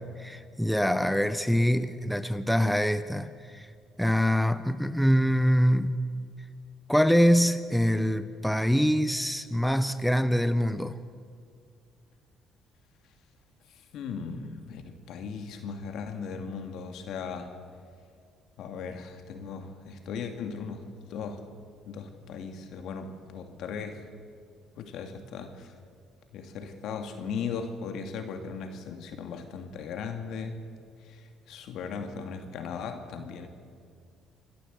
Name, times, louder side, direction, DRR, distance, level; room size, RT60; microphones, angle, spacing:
voice 1, 0.2-3.7 4.0-6.0 6.9-11.0, equal, ahead, 0.9 m, -24 dB
voice 2, 13.9-17.5 18.6-20.8 21.1-21.4 21.9-24.0 24.8-25.7 26.3-30.6 31.0-33.5, left 5 dB, 70° left, 2.3 m, -37 dB
27.5 x 11.5 x 8.1 m
supercardioid pair, 85°, 0 cm